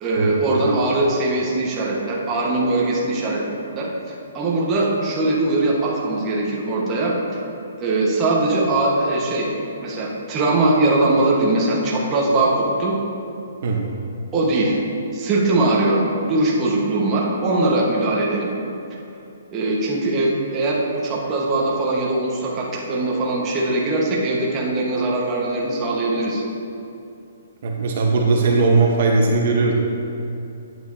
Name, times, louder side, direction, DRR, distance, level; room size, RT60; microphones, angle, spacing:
voice 1, 0.0-3.4 3.7-3.9 4.3-7.2 7.8-9.5 9.8-13.0 14.3-14.8 15.1-18.5 19.5-26.4, right 2 dB, 20° right, -5 dB, 1.3 m, -21 dB
voice 2, 27.6-29.7, right 3 dB, 50° right, 0 dB, 1.0 m, -18 dB
11.0 x 9.1 x 2.7 m, 2.7 s
hypercardioid pair, 165°, 0 cm